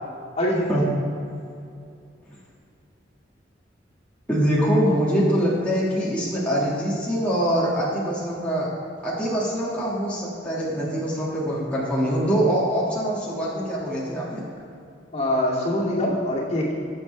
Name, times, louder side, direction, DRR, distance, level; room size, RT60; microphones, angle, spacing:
voice 1, 0.4-0.9 15.1-16.7, left 1 dB, 35° left, -5 dB, 2.4 m, -24 dB
voice 2, 4.3-8.7 9.0-14.4, equal, 5° left, -8 dB, 1.9 m, -24 dB
19.5 x 7.1 x 3.3 m, 2.5 s
head